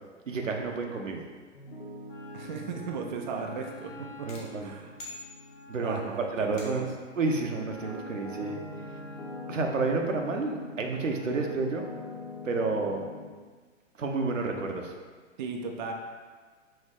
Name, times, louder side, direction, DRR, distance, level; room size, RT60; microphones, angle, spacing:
voice 1, 0.3-1.2 4.2-4.7 5.7-6.0 6.3-8.6 9.5-11.9 12.4-13.0 14.0-14.9, right 3 dB, 80° right, 2 dB, 0.7 m, -30 dB
Piano, 1.5-10.9 11.3-13.3, left 2 dB, 70° left, 1.4 m, -44 dB
Wind instrument woodwind instrument, 2.1-11.7, left 2 dB, 40° left, 1.4 m, -50 dB
voice 2, 2.3-3.9 4.2-4.3 4.6-4.9 5.8-6.3 6.6-6.9 15.4-15.9, right 5 dB, 40° right, 2 dB, 0.4 m, -36 dB
sound 1, 4.3-5.9 6.6-7.1, left 2 dB, 20° left, 0.6 m, -47 dB
5.3 x 2.6 x 3.7 m, 1.5 s
figure-of-eight pair, 115°, 37 cm